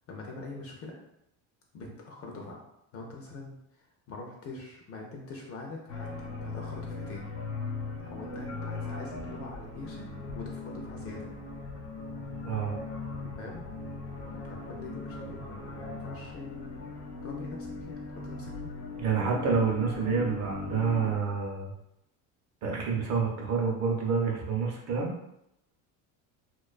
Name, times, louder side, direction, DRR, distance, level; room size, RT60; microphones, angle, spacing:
voice 1, 0.1-1.0 1.7-2.6 2.9-7.3 8.0-10.1 10.3-11.3 13.2-13.7 14.4-16.8 17.2-18.7, left 3 dB, 35° left, 0 dB, 0.4 m, -44 dB
sound 1, 5.9-21.2, left 3 dB, 90° left, 0.8 m, -39 dB
voice 2, 12.4-12.8 19.0-21.7 22.6-25.1, right 5 dB, 40° right, 0 dB, 0.6 m, -28 dB
2.4 x 2.2 x 2.3 m, 0.80 s
cardioid pair, 115°, 43 cm